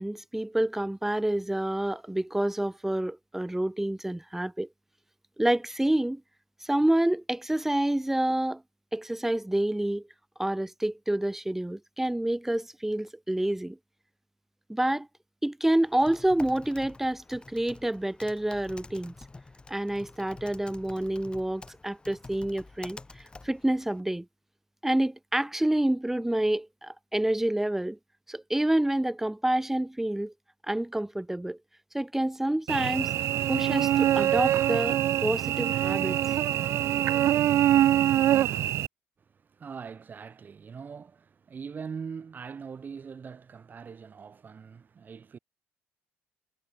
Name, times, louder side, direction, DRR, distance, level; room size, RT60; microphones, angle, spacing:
voice 1, 0.0-4.7 5.4-6.2 6.6-8.6 8.9-10.0 10.4-13.8 14.7-15.1 15.4-19.1 19.7-23.0 23.4-24.3 24.8-28.0 28.3-30.3 30.7-31.6 31.9-33.1 33.5-36.2, right 1 dB, 5° right, 0.8 m, -28 dB
Typing, 15.8-24.0, left 3 dB, 20° left, 4.7 m, -48 dB
Cricket / Buzz, 32.7-38.9, right 12 dB, 60° right, 0.3 m, -24 dB
voice 2, 39.3-45.4, right 6 dB, 40° right, 3.2 m, -42 dB
cardioid pair, 95°, 5 cm